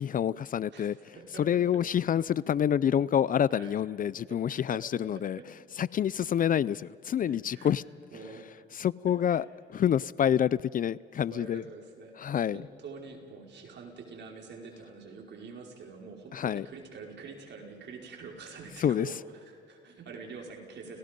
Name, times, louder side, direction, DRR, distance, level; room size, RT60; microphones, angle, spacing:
voice 1, 0.0-5.4 5.8-7.8 8.7-11.6 12.2-12.6 16.3-16.7 18.8-19.1, left 9 dB, 45° left, 0.4 m, -27 dB
voice 2, 1.1-1.6 3.5-3.8 4.3-5.0 5.4-5.5 7.3-7.7 8.1-8.6 9.3-9.4 11.3-21.0, right 4 dB, 65° right, 5.1 m, -46 dB
30.0 x 18.5 x 5.3 m
cardioid pair, 90°, 20 cm